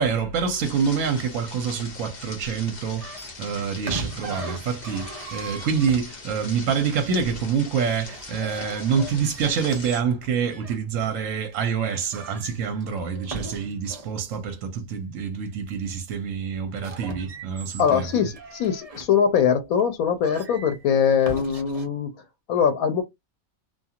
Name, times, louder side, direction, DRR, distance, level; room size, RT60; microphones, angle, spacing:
voice 1, 0.0-18.3, right 6 dB, 70° right, 1.0 m, -26 dB
sound 1, 0.6-10.0, left 3 dB, 40° left, 0.8 m, -41 dB
sound 2, 3.0-6.4 7.9-10.8 11.4-11.6 11.9-14.2 16.6-19.1 19.8-19.9 20.2-21.9, right 2 dB, 40° right, 0.5 m, -39 dB
voice 2, 17.8-22.2 22.5-23.0, left 7 dB, 80° left, 1.0 m, -22 dB
2.6 x 2.3 x 2.8 m
omnidirectional pair, 1.5 m